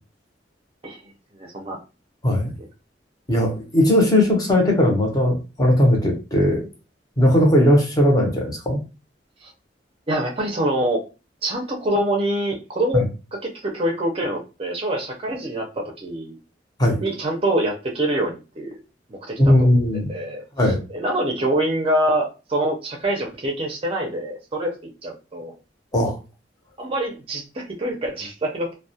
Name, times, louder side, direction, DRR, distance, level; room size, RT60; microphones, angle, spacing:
voice 1, 1.3-1.8 9.4-9.5 10.1-11.0 11.4-16.4 17.0-18.8 19.1-19.7 20.1-20.4 20.9-25.5 26.8-28.7, right 1 dB, 30° right, 0 dB, 0.5 m, -25 dB
voice 2, 3.3-6.7 7.2-8.8 12.9-13.0 16.8-17.0 19.4-20.1 20.6-20.8 25.9-26.2, left 1 dB, 20° left, 1 dB, 0.7 m, -18 dB
2.2 x 2.1 x 2.7 m, 0.30 s
head